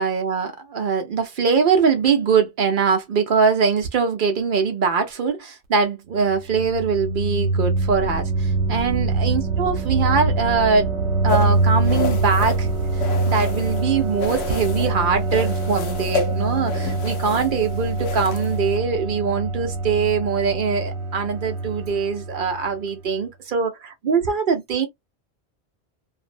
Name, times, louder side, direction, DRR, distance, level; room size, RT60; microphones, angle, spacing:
voice 1, 0.0-10.9 11.2-12.7 13.0-24.9, right 5 dB, 60° right, 0.7 m, -22 dB
sound 1, 6.1-22.8, right 3 dB, 90° right, 0.9 m, -24 dB
sound 2, 11.3-13.9 14.2-14.9 15.3-18.8, left 3 dB, 75° left, 0.8 m, -30 dB
2.5 x 2.0 x 2.5 m
omnidirectional pair, 1.1 m